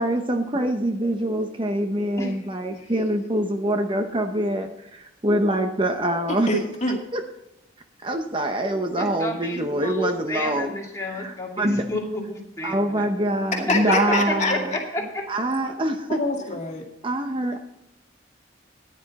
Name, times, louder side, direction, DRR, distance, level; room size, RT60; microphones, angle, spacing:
voice 1, 0.0-6.5 7.1-7.2 8.0-10.7 11.1-11.8 12.6-14.5 15.3-16.2 17.0-17.6, right 1 dB, 25° right, 5 dB, 0.8 m, -24 dB
voice 2, 6.5-7.0 13.5-14.5 16.1-16.8, left 2 dB, 35° left, 1 dB, 2.2 m, -26 dB
voice 3, 9.0-13.1 13.7-15.2, left 1 dB, 15° left, -1 dB, 2.4 m, -30 dB
14.5 x 10.0 x 4.2 m, 0.83 s
head